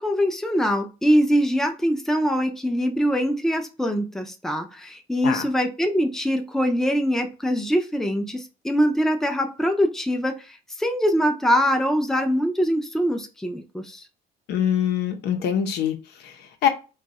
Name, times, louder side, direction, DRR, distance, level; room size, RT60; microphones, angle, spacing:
voice 1, 0.0-14.1, equal, ahead, 5 dB, 0.5 m, -23 dB
voice 2, 14.5-15.9 16.2-16.7, left 9 dB, 80° left, 6 dB, 0.7 m, -24 dB
2.5 x 2.3 x 4.1 m, 0.31 s
cardioid pair, 110°, 17 cm